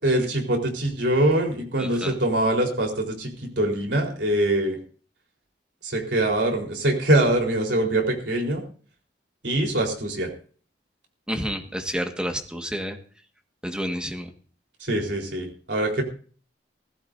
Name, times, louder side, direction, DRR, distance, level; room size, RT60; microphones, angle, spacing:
voice 1, 0.0-4.8 5.8-8.6 9.4-10.3 14.8-16.0, right 1 dB, 75° right, 1 dB, 4.1 m, -23 dB
voice 2, 1.8-2.1 11.3-13.0 13.6-14.3, equal, 5° right, 4 dB, 1.7 m, -29 dB
17.5 x 15.5 x 2.7 m, 0.42 s
head